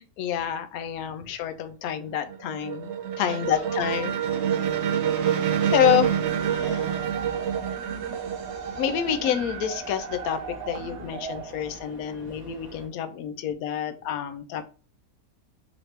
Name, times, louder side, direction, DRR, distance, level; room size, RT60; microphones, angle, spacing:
voice 1, 0.2-2.9 3.2-4.1 5.1-6.2 6.4-7.1 8.8-10.4 10.7-14.6, left 10 dB, 70° left, 9 dB, 1.0 m, -28 dB
sound 1, 1.9-9.7, right 9 dB, 70° right, 0.7 m, -27 dB
voice 2, 3.3-5.9 8.7-8.8 12.2-12.3, right 2 dB, 25° right, -1 dB, 1.1 m, -45 dB
sound 2, 5.6-12.9, right 1 dB, 40° right, 1.3 m, -47 dB
sound 3, 6.3-12.2, right 6 dB, 90° right, 1.2 m, -38 dB
4.0 x 3.0 x 3.2 m, 0.36 s
omnidirectional pair, 1.7 m